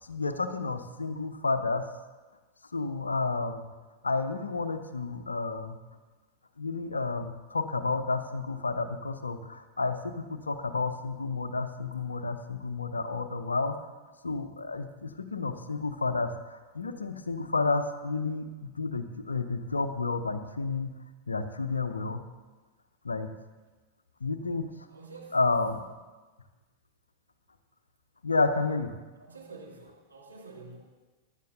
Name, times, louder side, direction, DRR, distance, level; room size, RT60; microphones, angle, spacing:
voice 1, 0.0-1.8 2.7-3.7 4.0-5.8 6.6-13.7 14.2-20.9 21.3-22.2 23.0-23.3 24.2-24.6 25.3-25.8 28.2-28.9, left 3 dB, 75° left, 10 dB, 0.8 m, -31 dB
voice 2, 24.9-25.4 29.2-30.8, right 3 dB, 80° right, -3 dB, 2.3 m, -47 dB
15.5 x 11.5 x 2.7 m, 1.2 s
figure-of-eight pair, 90°, 0 cm